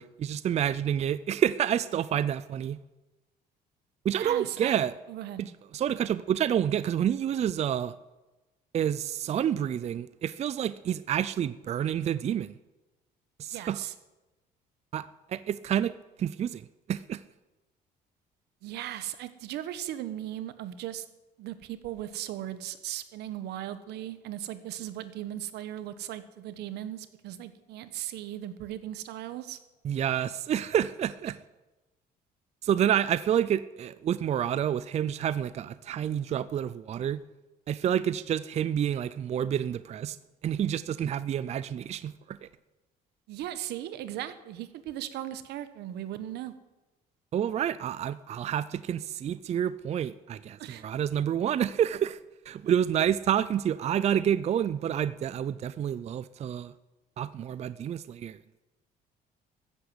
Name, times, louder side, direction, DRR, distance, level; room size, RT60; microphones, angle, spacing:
voice 1, 0.0-2.8 4.0-4.9 5.4-7.9 8.7-12.5 13.4-13.8 14.9-17.2 29.8-31.4 32.6-37.2 37.7-40.2 40.4-42.5 47.3-52.2 52.5-56.7 57.2-58.4, right 9 dB, 40° right, 15 dB, 0.5 m, -29 dB
voice 2, 4.1-4.8 5.1-5.5 13.5-13.9 18.6-21.0 21.4-29.6 43.3-46.5 50.6-50.8, right 12 dB, 80° right, 12 dB, 1.1 m, -37 dB
14.5 x 8.4 x 7.9 m, 1.1 s
cardioid pair, 110°, 17 cm